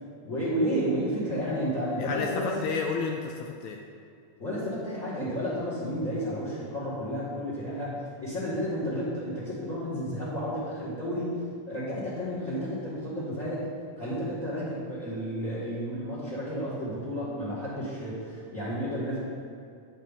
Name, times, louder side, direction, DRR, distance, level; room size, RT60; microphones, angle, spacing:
voice 1, 0.2-2.5 4.4-11.4 11.7-13.7 14.0-19.2, equal, 30° left, -10 dB, 1.6 m, -31 dB
voice 2, 2.0-3.8, left 5 dB, 80° left, 1 dB, 1.7 m, -31 dB
8.9 x 5.8 x 3.6 m, 2.4 s
omnidirectional pair, 3.6 m